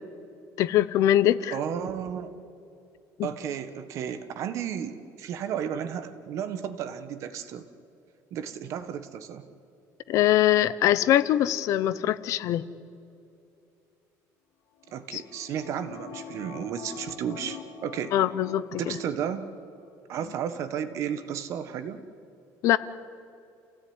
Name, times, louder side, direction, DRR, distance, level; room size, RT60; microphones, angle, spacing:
voice 1, 0.6-1.5 3.2-3.3 10.1-12.6 15.1-15.2 18.1-19.0 22.6-22.8, left 12 dB, 50° left, 15 dB, 0.9 m, -22 dB
voice 2, 1.5-2.3 3.2-7.7 8.3-9.4 14.9-18.1 18.8-19.5 20.1-22.0, right 8 dB, 50° right, 10 dB, 1.5 m, -33 dB
sound 1, 14.8-19.6 19.9-20.0, left 8 dB, 80° left, 3.6 m, -44 dB
29.5 x 16.5 x 9.7 m, 2.7 s
cardioid pair, 175°, 7 cm